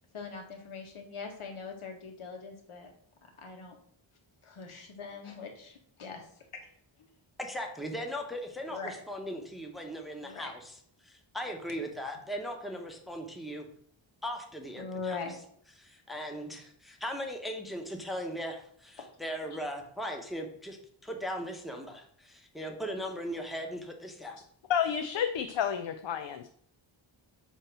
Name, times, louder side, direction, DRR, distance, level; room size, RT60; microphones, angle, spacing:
voice 1, 0.1-2.9 3.2-3.8 4.4-6.4 8.6-8.9 10.2-10.5 14.8-15.4, left 4 dB, 85° left, 2 dB, 1.7 m, -41 dB
voice 2, 7.4-10.7 11.0-13.6 14.2-15.2 15.8-20.8 21.0-24.4, equal, ahead, 2 dB, 0.9 m, -38 dB
voice 3, 24.7-26.5, left 8 dB, 65° left, 7 dB, 0.6 m, -30 dB
8.1 x 3.0 x 5.9 m, 0.62 s
wide cardioid pair, 165°, 48 cm